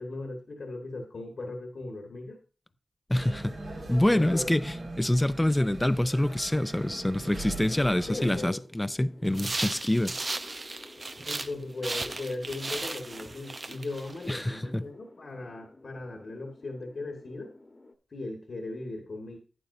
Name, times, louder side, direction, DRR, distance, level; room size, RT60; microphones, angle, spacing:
voice 1, 0.0-2.4 4.1-4.5 8.1-8.6 11.3-17.5 18.1-19.4, left 2 dB, 70° left, 1.6 m, -38 dB
voice 2, 3.1-3.6 3.9-10.2 14.3-14.9, left 1 dB, 15° left, 0.6 m, -26 dB
sound 1, 3.1-8.5, right 2 dB, 90° right, 4.5 m, -41 dB
sound 2, 6.9-17.9, left 2 dB, 40° left, 1.3 m, -53 dB
sound 3, 9.3-11.5 11.8-14.4, right 2 dB, 50° right, 0.7 m, -36 dB
11.5 x 8.8 x 2.7 m
cardioid pair, 50°, 0 cm